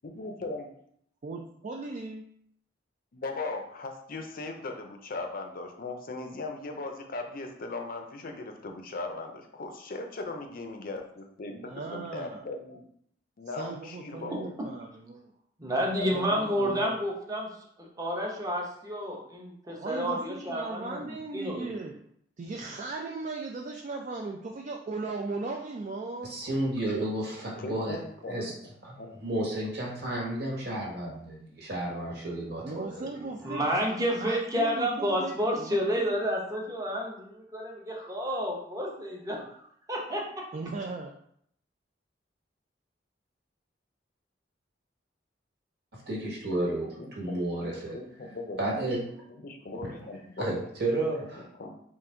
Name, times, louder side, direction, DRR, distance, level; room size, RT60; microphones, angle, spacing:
voice 1, 0.0-0.7 3.1-12.8 13.4-14.5 15.9-16.7 27.6-28.7 29.0-29.2 30.6-30.7 31.0-31.1 32.6-32.8 46.8-48.8 49.3-50.5 51.4-51.7, left 3 dB, 50° left, 4 dB, 0.5 m, -39 dB
voice 2, 1.2-2.2 11.5-12.5 13.6-15.3 16.1-17.0 19.6-22.0 22.4-26.3 32.6-33.7 34.2-36.1 40.5-41.1, right 3 dB, 40° right, 1 dB, 0.4 m, -37 dB
voice 3, 15.6-17.5 17.8-21.7 33.4-40.2, equal, 20° right, -2 dB, 0.8 m, -30 dB
voice 4, 26.2-28.0 28.3-28.5 28.8-28.9 29.2-33.3 46.1-46.9 47.1-48.0 48.6-49.2 49.8-49.9 50.4-51.4, right 1 dB, 65° right, -3 dB, 1.3 m, -32 dB
3.8 x 2.5 x 4.3 m, 0.68 s
head